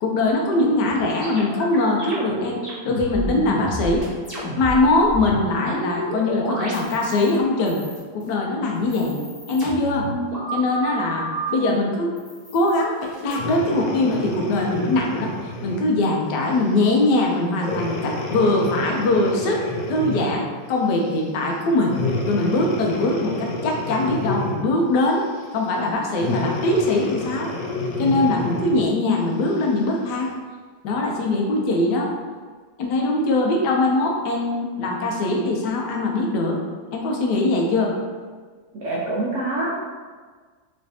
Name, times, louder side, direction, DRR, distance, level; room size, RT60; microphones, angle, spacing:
voice 1, 0.0-2.6 2.8-4.1 4.6-7.8 8.1-9.2 9.5-10.1 10.5-12.2 12.5-15.3 15.6-19.6 19.9-22.0 22.3-25.2 25.5-27.5 28.0-30.3 30.8-32.1 32.8-36.6 36.9-37.9, left 2 dB, 85° left, 0 dB, 1.2 m, -21 dB
sound 1, 0.8-4.8 5.0-7.4 7.7-8.3 8.8-11.5 12.2-13.4, equal, 25° left, 1.3 m, -31 dB
Breathing, 13.3-15.9 16.5-16.8 17.6-20.5 21.9-24.8 26.1-28.9 29.5-29.6, left 2 dB, 70° left, 0.8 m, -29 dB
voice 2, 38.8-39.7, right 2 dB, 65° right, -6 dB, 0.7 m, -25 dB
3.2 x 3.1 x 2.7 m, 1.5 s
omnidirectional pair, 1.8 m